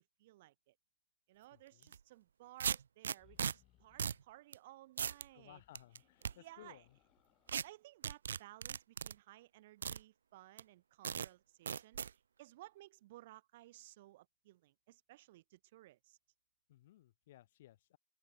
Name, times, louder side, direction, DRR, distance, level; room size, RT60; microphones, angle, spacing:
voice 1, 0.2-0.7 1.3-5.6 6.3-6.8 7.5-16.2, right 16 dB, 60° right, 4.9 m, -58 dB
voice 2, 1.5-1.9 5.3-7.0 16.7-18.0, left 14 dB, 65° left, 6.1 m, -60 dB
sound 1, 1.8-2.0 2.6-3.5 4.0-4.2 4.5-4.6 5.0-5.2 5.7-6.3 7.5-7.6 8.0-9.1 9.8-10.0 10.6-10.7 11.0-11.3 11.7-12.1, right 7 dB, 80° right, 0.4 m, -37 dB
sound 2, 3.0-4.3 5.2-7.8, left 16 dB, 35° left, 7.8 m, -72 dB
open air
hypercardioid pair, 115°, 0 cm